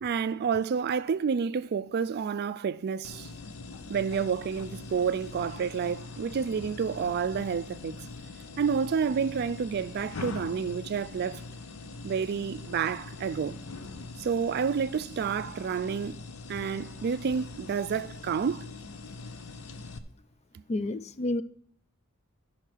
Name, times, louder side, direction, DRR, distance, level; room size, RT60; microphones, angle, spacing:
voice 1, 0.0-3.3 3.9-8.1 8.6-11.4 12.0-13.6 14.2-16.2 16.5-18.7, right 6 dB, 50° right, 0.4 m, -29 dB
sound 1, 3.0-20.0, left 3 dB, 90° left, 0.7 m, -42 dB
voice 2, 20.7-21.4, left 2 dB, 30° left, 0.3 m, -29 dB
13.5 x 5.7 x 4.5 m
head